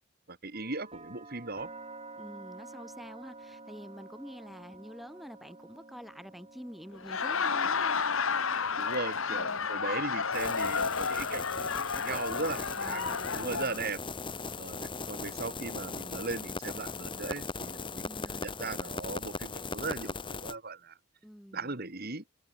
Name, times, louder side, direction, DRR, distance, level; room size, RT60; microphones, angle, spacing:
voice 1, 0.3-1.7 8.8-11.4 11.9-13.0 13.4-14.0 14.6-21.0 21.5-22.2, right 3 dB, 45° right, 2.2 m, -38 dB
sound 1, 0.5-14.4, right 3 dB, 25° right, 5.2 m, -52 dB
voice 2, 2.2-8.4 9.3-9.7 12.1-13.9 18.0-18.6 21.2-21.8, equal, ahead, 6.2 m, -47 dB
Laughter, 6.9-13.8, left 5 dB, 65° left, 1.7 m, -31 dB
sound 2, 10.3-20.5, left 3 dB, 20° left, 1.7 m, -39 dB
head